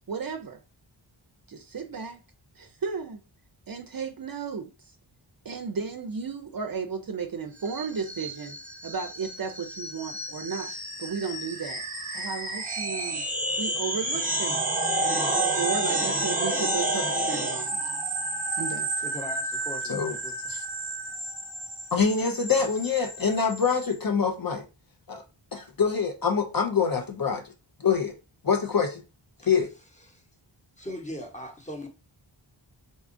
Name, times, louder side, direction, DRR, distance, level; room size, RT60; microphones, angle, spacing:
voice 1, 0.1-0.6 1.5-2.2 2.6-3.2 3.7-4.7 5.4-8.6 8.8-10.7 11.0-11.8 12.1-13.2 13.6-14.8 15.6-17.8 18.6-18.9, right 5 dB, 50° right, 0.4 m, -34 dB
sound 1, 7.6-23.9, right 2 dB, 15° right, 0.9 m, -30 dB
voice 2, 19.0-20.4 29.4-29.6 30.0-30.2 30.8-31.9, left 1 dB, 15° left, 0.9 m, -39 dB
voice 3, 21.9-24.6 25.1-25.2 25.5-27.5 27.8-28.1 28.4-29.0 29.5-29.7, left 6 dB, 50° left, 0.5 m, -25 dB
3.8 x 2.3 x 2.5 m
wide cardioid pair, 45°, 48 cm